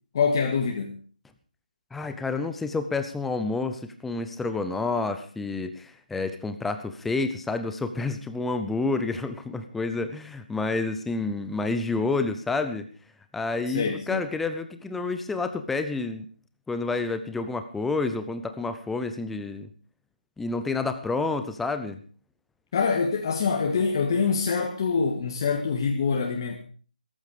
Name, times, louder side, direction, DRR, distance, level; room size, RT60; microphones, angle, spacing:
voice 1, 0.1-1.0 13.7-14.2 22.7-26.6, left 5 dB, 30° left, 1 dB, 2.1 m, -25 dB
voice 2, 1.9-12.9 13.3-16.3 16.7-19.7 20.4-22.0, left 3 dB, 5° left, 9 dB, 0.7 m, -29 dB
16.0 x 14.0 x 5.0 m, 0.41 s
hypercardioid pair, 170°, 5 cm